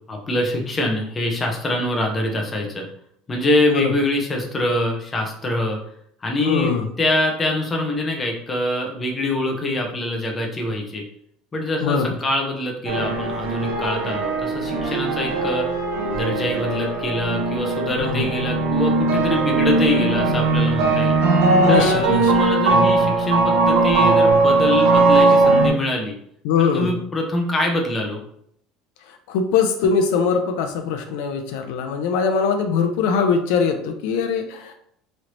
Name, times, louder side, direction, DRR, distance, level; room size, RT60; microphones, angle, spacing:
voice 1, 0.1-2.9 3.3-5.8 6.2-6.7 7.0-11.0 11.5-15.7 16.1-21.2 21.7-26.1 26.7-28.2, left 1 dB, 15° left, 1 dB, 0.5 m, -24 dB
voice 2, 6.4-6.9 11.8-12.2 18.0-18.4 21.6-22.3 26.4-26.9 29.3-34.7, left 6 dB, 75° left, 6 dB, 0.4 m, -21 dB
sound 1, 12.9-25.7, right 3 dB, 90° right, 0.7 m, -19 dB
3.1 x 2.5 x 3.0 m, 0.69 s
cardioid pair, 170°, 0 cm